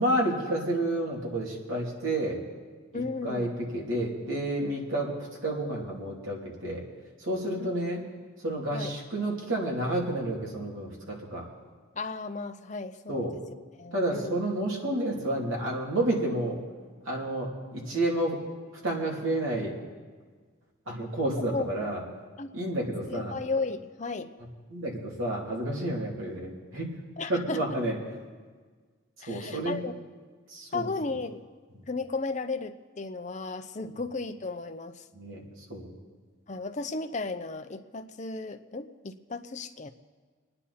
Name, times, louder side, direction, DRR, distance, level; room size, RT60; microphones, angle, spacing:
voice 1, 0.0-2.4 2.9-3.5 3.7-5.1 5.4-6.8 7.2-8.0 8.4-11.5 13.1-13.3 13.9-16.6 17.1-18.4 18.8-19.7 20.9-22.0 22.5-23.3 24.7-26.9 27.3-28.0 29.3-29.8 30.5-30.9 35.1-35.4 35.7-35.9, right 1 dB, 80° right, -2 dB, 3.0 m, -30 dB
voice 2, 2.9-3.6 7.6-7.7 8.0-8.1 8.7-8.9 12.0-13.3 13.8-14.4 21.5-21.7 22.4-22.5 23.1-24.3 27.2-27.6 29.2-29.9 30.7-31.4 31.9-35.0 36.5-39.9, left 3 dB, 35° left, 8 dB, 0.6 m, -34 dB
25.0 x 9.9 x 4.3 m, 1.5 s
head